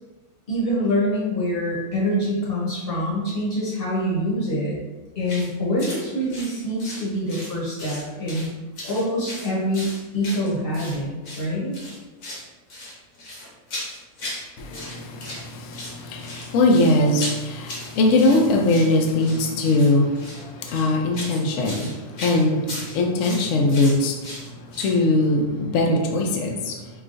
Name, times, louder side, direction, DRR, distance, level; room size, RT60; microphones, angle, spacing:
voice 1, 0.5-4.8 5.2-8.5 8.8-11.7, equal, 45° left, -6 dB, 1.0 m, -25 dB
sound 1, 5.2-5.5 5.8-6.0 6.3-7.5 7.8-8.5 8.8-11.0 11.2-11.5 11.7-12.4 12.7-14.4 14.7-15.4 15.7-25.0, left 1 dB, 85° left, 1.5 m, -36 dB
voice 2, 14.6-26.9, left 2 dB, 65° left, 3 dB, 0.8 m, -21 dB
4.9 x 2.3 x 2.5 m, 1.2 s
omnidirectional pair, 1.6 m